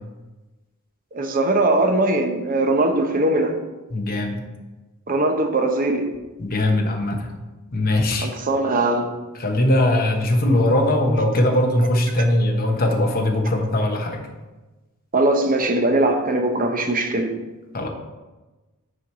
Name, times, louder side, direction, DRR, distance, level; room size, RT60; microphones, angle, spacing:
voice 1, 1.1-3.6 5.1-6.1 8.2-9.1 15.1-17.3, right 2 dB, 40° right, 5 dB, 0.8 m, -20 dB
voice 2, 3.9-4.4 6.4-7.3 7.7-8.3 9.4-14.3 17.7-17.9, left 1 dB, 40° left, 2 dB, 1.1 m, -20 dB
6.5 x 4.5 x 5.6 m, 1.1 s
head